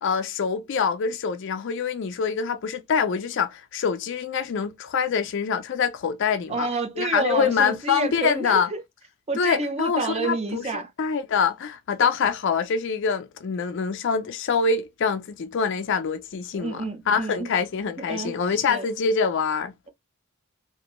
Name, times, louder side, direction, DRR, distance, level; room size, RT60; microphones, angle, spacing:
voice 1, 0.0-6.7 7.0-8.7 9.4-19.7, left 6 dB, 55° left, 0.4 m, -25 dB
voice 2, 6.5-8.8 9.3-10.9 12.0-12.1 16.5-17.5 18.0-18.9, right 3 dB, 30° right, 0.6 m, -29 dB
2.8 x 2.5 x 3.0 m
head